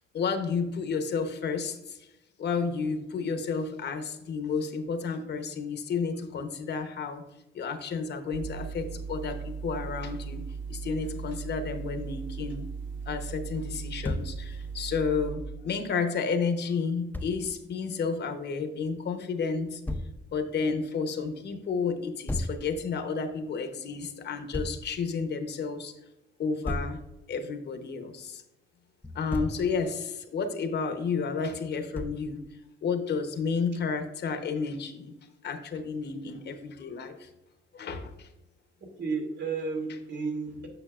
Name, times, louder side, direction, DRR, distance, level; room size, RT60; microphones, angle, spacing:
voice 1, 0.1-2.0 2.4-7.2 7.5-10.4 10.7-12.7 13.1-19.8 20.3-25.9 26.4-27.0 27.3-28.4 29.1-32.4 32.8-35.1 35.4-37.3 37.7-38.3, left 5 dB, 60° left, 8 dB, 0.9 m, -31 dB
sound 1, 8.3-15.3, right 5 dB, 75° right, 1.3 m, -38 dB
Thump thud, 14.0-14.3 17.1-17.3 19.9-20.1 22.3-22.6 24.5-24.8 26.6-27.0 29.0-29.6 31.9-32.3, left 1 dB, 10° left, 0.6 m, -32 dB
voice 2, 39.0-40.7, right 4 dB, 60° right, 1 dB, 2.1 m, -32 dB
8.9 x 6.1 x 2.4 m, 0.92 s
cardioid pair, 90°, 20 cm